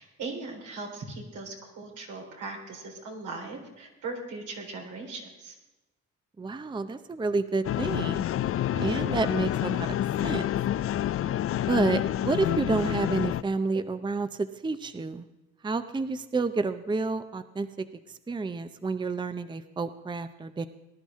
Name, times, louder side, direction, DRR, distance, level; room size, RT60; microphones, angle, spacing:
voice 1, 0.0-5.6 8.7-9.1, right 3 dB, 80° right, 0 dB, 4.0 m, -39 dB
voice 2, 6.4-8.2 8.8-10.0 10.2-10.5 11.7-15.3 15.6-17.9 18.3-20.7, right 3 dB, 15° right, 11 dB, 0.6 m, -29 dB
sound 1, 7.6-13.4, left 12 dB, 50° left, 0.4 m, -28 dB
19.0 x 11.5 x 3.6 m, 1.0 s
cardioid pair, 90°, 30 cm